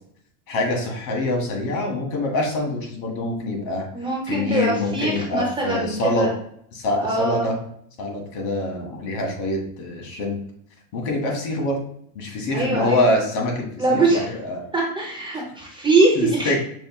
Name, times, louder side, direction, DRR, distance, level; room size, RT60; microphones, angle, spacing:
voice 1, 0.5-3.9 4.3-6.3 6.7-7.6 8.0-10.4 10.9-11.8 12.1-14.6 16.1-16.6, left 1 dB, 65° left, 1 dB, 1.5 m, -25 dB
voice 2, 3.9-6.3 6.9-7.5 12.5-13.1 13.8-14.3 14.7-16.6, right 2 dB, 10° right, -2 dB, 0.4 m, -22 dB
5.3 x 2.2 x 3.6 m, 0.67 s
supercardioid pair, 150°, 43 cm